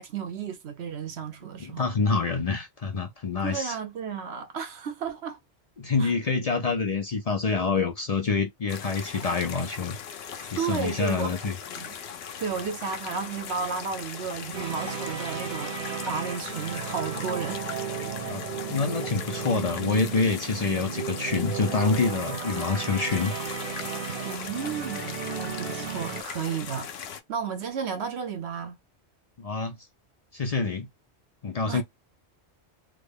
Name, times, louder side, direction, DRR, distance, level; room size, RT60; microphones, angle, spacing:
voice 1, 0.0-1.8 3.4-5.4 6.0-6.1 10.6-11.9 12.4-15.8 16.0-17.6 18.2-18.4 24.2-26.9 27.3-28.8 31.7-31.8, right 6 dB, 80° right, 1.0 m, -33 dB
voice 2, 1.6-3.8 5.8-10.0 10.4-11.5 18.2-18.4 18.7-23.3 29.4-29.8 30.3-30.9 31.4-31.8, left 4 dB, 45° left, 0.5 m, -27 dB
sound 1, 8.7-27.2, left 8 dB, 70° left, 0.8 m, -39 dB
sound 2, 14.5-26.2, right 7 dB, 55° right, 0.8 m, -35 dB
3.5 x 2.2 x 3.4 m
omnidirectional pair, 1.1 m